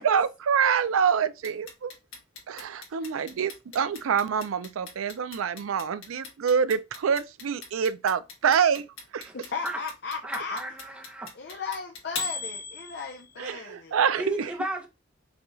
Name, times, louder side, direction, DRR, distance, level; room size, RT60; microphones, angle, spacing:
voice 1, 0.0-1.9 2.5-8.9 9.1-9.3 13.4-14.5, right 7 dB, 85° right, 0.4 m, -26 dB
Clock, 1.4-13.4, left 4 dB, 75° left, 1.5 m, -38 dB
voice 2, 9.5-10.6 11.3-14.0, left 5 dB, 55° left, 0.5 m, -36 dB
voice 3, 10.2-11.3 14.2-14.9, right 1 dB, 5° right, 0.7 m, -34 dB
5.0 x 2.3 x 3.1 m
head